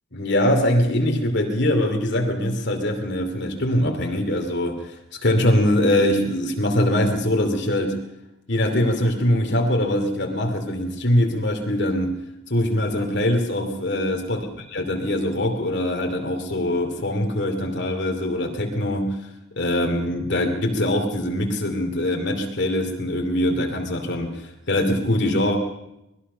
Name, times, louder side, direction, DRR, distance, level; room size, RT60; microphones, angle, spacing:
voice 1, 0.1-4.9 5.2-8.0 8.5-12.2 12.5-14.5 14.7-19.2 19.6-25.6, left 1 dB, 55° left, 3 dB, 2.7 m, -22 dB
25.0 x 20.5 x 5.6 m, 0.88 s
head